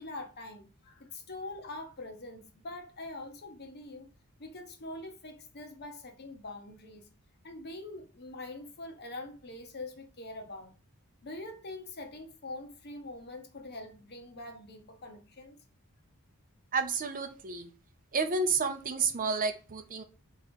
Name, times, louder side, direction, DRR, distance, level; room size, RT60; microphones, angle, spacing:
voice 1, 0.0-4.1 4.4-7.1 7.4-10.7 11.2-15.6, left 2 dB, 45° left, 0.9 m, -44 dB
voice 2, 16.7-17.7 18.1-20.0, right 4 dB, 40° right, 0.6 m, -30 dB
3.8 x 3.0 x 4.4 m
head